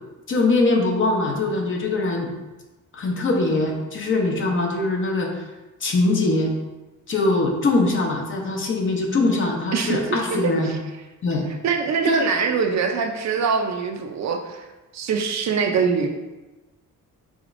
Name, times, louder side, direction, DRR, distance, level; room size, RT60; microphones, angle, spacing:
voice 1, 0.3-2.3 2.9-5.4 5.8-6.5 7.1-10.7 11.2-11.4 12.1-12.2, left 2 dB, 40° left, 1 dB, 0.6 m, -22 dB
voice 2, 9.7-10.2 10.4-10.8 11.6-14.7 14.9-16.1, right 5 dB, 60° right, 4 dB, 0.5 m, -23 dB
5.0 x 3.9 x 2.5 m, 1.1 s
wide cardioid pair, 170°, 32 cm